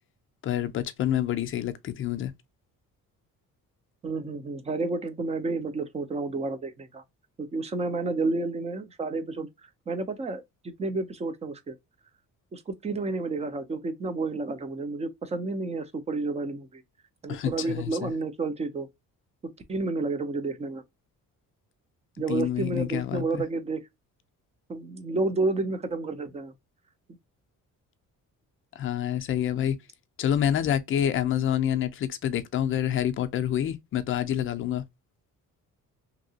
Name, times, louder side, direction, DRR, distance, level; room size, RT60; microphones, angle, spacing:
voice 1, 0.4-2.3 17.3-18.1 22.3-23.4 28.8-29.8 30.2-34.8, left 10 dB, 40° left, 0.4 m, -27 dB
voice 2, 4.0-7.0 7.4-9.5 9.9-11.8 12.5-16.8 17.2-18.9 19.4-20.8 22.2-23.8 24.7-26.5, right 3 dB, 20° right, 0.4 m, -30 dB
2.9 x 2.7 x 2.6 m
cardioid pair, 160°, 32 cm